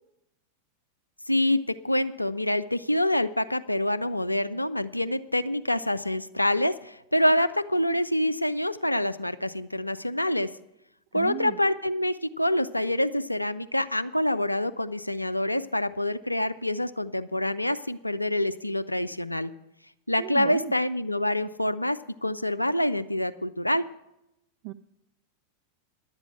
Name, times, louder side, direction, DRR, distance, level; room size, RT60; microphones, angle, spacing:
voice 1, 1.3-10.5 11.1-19.5 20.1-23.8, left 1 dB, 85° left, 11 dB, 0.3 m, -26 dB
voice 2, 11.1-11.6 20.2-20.7 24.6-24.7, right 17 dB, 45° right, 13 dB, 0.3 m, -34 dB
11.0 x 8.1 x 8.1 m, 0.88 s
figure-of-eight pair, 90°, 0 cm